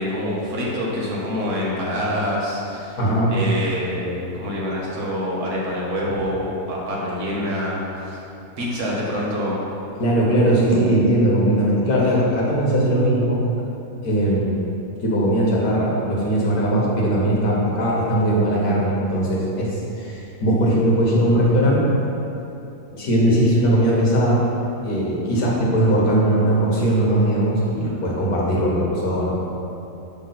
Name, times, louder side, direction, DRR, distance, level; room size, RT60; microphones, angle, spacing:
voice 1, 0.0-3.0 3.3-8.2 8.6-9.7, left 1 dB, 85° right, -5 dB, 1.8 m, -26 dB
voice 2, 3.0-3.3 10.0-13.4 14.0-14.6 15.0-21.8 22.9-24.5 24.8-29.3, right 1 dB, 85° left, -4 dB, 1.9 m, -19 dB
7.4 x 3.3 x 5.8 m, 2.9 s
omnidirectional pair, 1.6 m